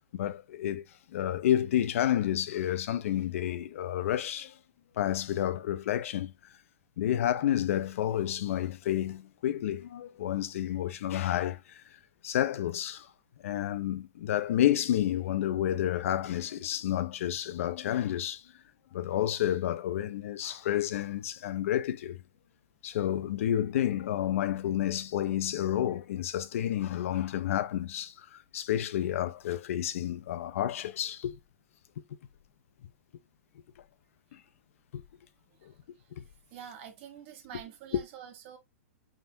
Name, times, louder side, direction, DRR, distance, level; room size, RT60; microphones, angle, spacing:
voice 1, 0.1-0.8 1.1-4.6 5.0-6.3 7.0-11.8 12.2-13.1 13.4-18.4 18.9-22.2 22.8-31.4 34.3-34.4 34.9-35.0 35.6-35.7 36.1-36.2 37.9-38.0, left 11 dB, 65° left, 0.4 m, -30 dB
voice 2, 36.5-38.6, right 9 dB, 50° right, 1.2 m, -46 dB
3.6 x 2.5 x 2.6 m
hypercardioid pair, 130°, 8 cm